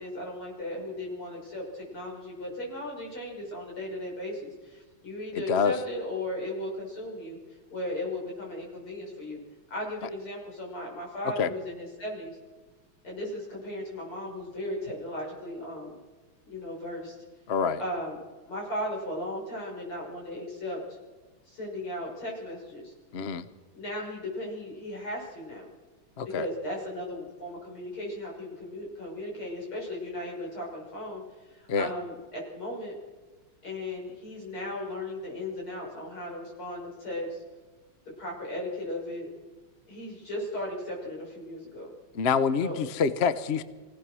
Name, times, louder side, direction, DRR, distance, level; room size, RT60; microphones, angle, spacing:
voice 1, 0.0-7.4 7.7-9.4 9.7-12.4 13.0-16.0 16.4-17.2 17.8-18.2 18.5-21.0 21.5-22.9 23.7-25.7 26.2-32.9 33.6-37.4 38.2-39.3 39.9-41.9 42.6-42.8, left 1 dB, 80° left, -2 dB, 7.0 m, -36 dB
voice 2, 17.5-17.8 23.1-23.5 26.2-26.4 31.7-31.9 42.1-43.6, left 6 dB, 50° left, 13 dB, 0.7 m, -26 dB
24.0 x 17.5 x 6.3 m, 1.3 s
omnidirectional pair, 2.3 m